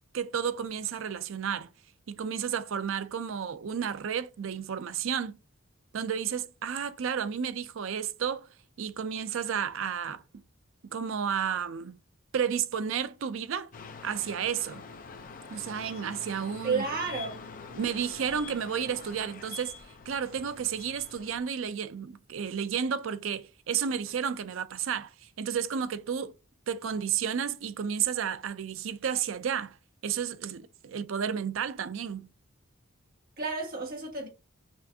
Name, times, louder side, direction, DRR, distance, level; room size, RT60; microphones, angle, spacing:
voice 1, 0.1-1.7 2.1-5.4 5.9-8.5 8.8-10.4 10.9-12.0 12.3-13.7 14.0-14.8 15.5-16.8 17.7-19.7 20.1-26.3 26.7-29.8 30.0-32.3, right 7 dB, 65° right, 0.4 m, -32 dB
sound 1, 13.7-21.4, left 5 dB, 40° left, 0.5 m, -45 dB
voice 2, 16.6-17.4 33.4-34.3, right 4 dB, 45° right, 1.5 m, -31 dB
6.1 x 2.5 x 2.7 m
head